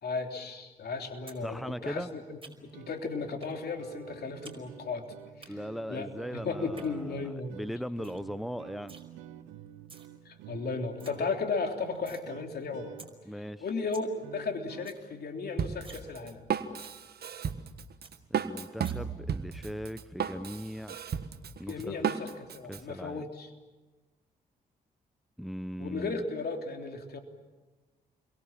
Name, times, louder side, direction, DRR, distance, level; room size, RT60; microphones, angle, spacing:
voice 1, 0.0-5.0 5.4-5.5 5.9-7.6 10.3-12.9 13.6-16.5 21.7-23.5 25.8-27.2, left 4 dB, 55° left, 4 dB, 3.5 m, -35 dB
sound 1, 1.3-1.4 1.7-2.8 3.4-3.6 3.9-4.6 4.9-5.5 6.5-6.9 7.3-7.4 7.7-7.8 8.0-8.2 8.5-9.0 9.7-10.1 10.5-10.6 10.8-11.1 11.5-12.2 12.6-12.7 13.0-13.1 13.5-13.6 13.8-14.1 14.4-14.5 14.7-15.0 15.4-15.5 15.8-16.1 16.4-16.5 16.8-17.0 17.4-17.5 17.7-17.8 18.0-18.1 18.8-18.9, right 4 dB, 30° right, 5.2 m, -51 dB
voice 2, 1.4-2.1 5.5-9.0 13.3-13.6 18.3-21.0 21.6-22.0 22.7-23.2 25.4-26.2, equal, ahead, 14 dB, 0.9 m, -39 dB
sound 2, 2.7-14.9, right 12 dB, 85° right, 1.1 m, -50 dB
Drum kit, 15.6-22.8, right 7 dB, 55° right, 1.5 m, -34 dB
29.0 x 23.0 x 7.4 m, 1.2 s
hypercardioid pair, 45°, 19 cm